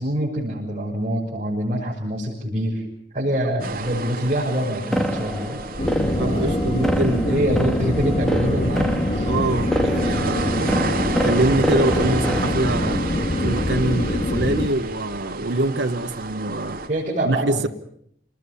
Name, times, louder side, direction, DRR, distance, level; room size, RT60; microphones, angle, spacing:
voice 1, 0.0-2.8 3.1-5.6 6.0-6.6 7.2-9.3 16.9-17.7, equal, 40° right, -7 dB, 6.6 m, -25 dB
sound 1, 3.6-16.9, right 3 dB, 55° right, 2.9 m, -32 dB
sound 2, 4.9-12.6, equal, 5° left, 1.5 m, -27 dB
sound 3, 5.8-14.7, left 1 dB, 35° left, 1.4 m, -24 dB
voice 2, 6.2-7.5 9.3-10.8 11.2-13.1 13.4-16.8 17.2-17.7, right 2 dB, 80° right, 7 dB, 1.1 m, -24 dB
28.0 x 20.0 x 7.0 m, 0.70 s
head